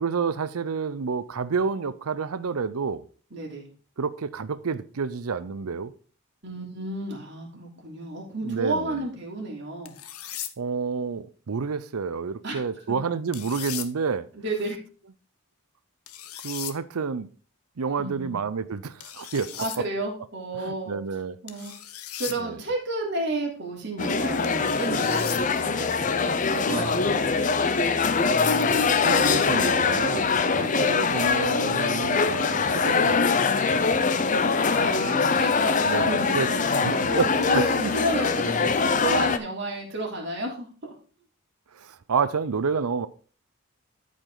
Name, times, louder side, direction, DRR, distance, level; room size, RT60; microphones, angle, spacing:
voice 1, 0.0-3.0 4.0-5.9 7.5-7.6 8.4-9.0 10.6-14.3 16.4-17.3 17.8-19.5 20.5-21.4 22.4-22.6 26.7-27.1 29.0-33.5 35.8-36.5 36.8-37.3 37.5-37.9 41.7-43.1, right 5 dB, 80° right, 0.6 m, -29 dB
voice 2, 3.3-3.7 6.4-9.9 12.4-12.5 12.9-13.0 14.3-14.8 18.0-18.3 19.6-20.9 21.4-21.7 22.2-25.9 26.2-27.7 30.5-30.9 34.7-37.2 37.5-37.7 37.9-40.9, right 2 dB, 50° right, 3.1 m, -32 dB
sound 1, 9.9-10.5 13.3-13.9 16.1-16.8 19.0-19.8 21.5-22.4 24.4-25.4 27.5-27.8, left 12 dB, 80° left, 0.8 m, -37 dB
sound 2, 24.0-39.4, left 4 dB, 35° left, 0.5 m, -23 dB
13.0 x 5.0 x 3.8 m
head